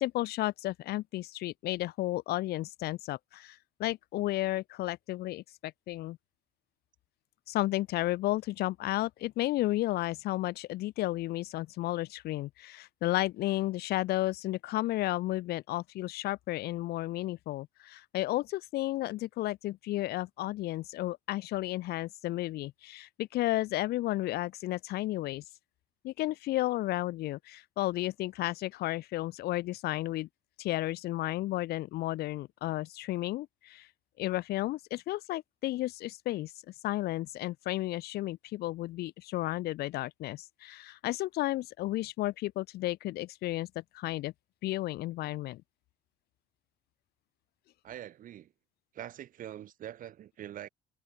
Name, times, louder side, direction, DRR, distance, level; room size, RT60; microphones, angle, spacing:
voice 1, 0.0-6.2 7.5-25.4 26.0-30.3 30.6-33.9 34.2-36.5 36.8-44.3 44.6-45.6, left 16 dB, 70° left, 0.6 m, -33 dB
voice 2, 47.8-48.5 48.9-50.7, right 11 dB, 55° right, 1.0 m, -44 dB
cardioid pair, 110°, 17 cm